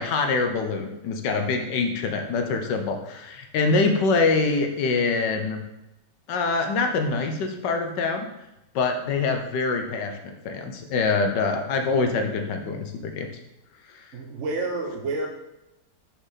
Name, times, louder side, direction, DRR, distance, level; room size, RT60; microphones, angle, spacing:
voice 1, 0.0-5.6 6.3-8.3 8.7-13.3 13.9-14.1, left 4 dB, 80° left, 5 dB, 1.5 m, -25 dB
voice 2, 14.1-15.3, right 2 dB, 50° right, 0 dB, 1.0 m, -29 dB
5.9 x 5.1 x 4.0 m, 0.92 s
omnidirectional pair, 1.9 m